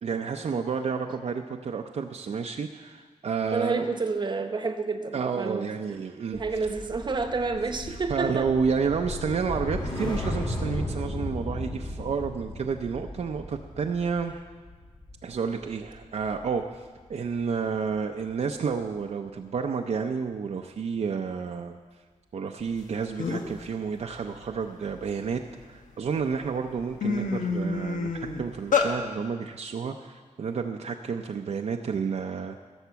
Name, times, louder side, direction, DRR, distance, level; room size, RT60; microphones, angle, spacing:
voice 1, 0.0-3.9 5.1-6.7 7.9-14.4 15.2-21.8 22.3-28.1 28.4-32.6, right 5 dB, 60° right, 3 dB, 0.6 m, -30 dB
voice 2, 3.5-6.0 6.3-8.5 15.6-15.7, right 4 dB, 35° right, 7 dB, 0.9 m, -30 dB
sound 1, 6.3-16.8 17.1-17.4, left 1 dB, 35° left, 2.1 m, -35 dB
sound 2, 22.8-22.9 23.2-23.6 24.1-25.6 26.2-26.4 26.7-28.9, left 5 dB, 90° left, 1.3 m, -28 dB
16.0 x 7.2 x 6.9 m, 1.4 s
wide cardioid pair, 170°, 13 cm